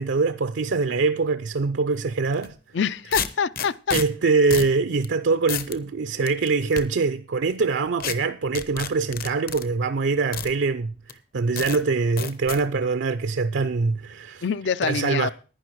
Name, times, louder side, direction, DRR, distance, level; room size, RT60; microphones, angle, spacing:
voice 1, 0.0-2.5 3.9-14.4 14.8-15.3, right 4 dB, 90° right, 0.5 m, -23 dB
sound 1, 2.3-2.5 3.1-4.0 4.5-4.7 5.0-5.1 5.5-5.8 6.3-6.8 8.0-8.1 8.5-9.6 10.3-10.5 11.1-11.2 11.6-11.8 12.2-12.6, left 7 dB, 50° left, 0.8 m, -30 dB
voice 2, 2.7-4.0 14.4-15.3, left 6 dB, 75° left, 0.5 m, -25 dB
11.0 x 9.9 x 4.6 m
head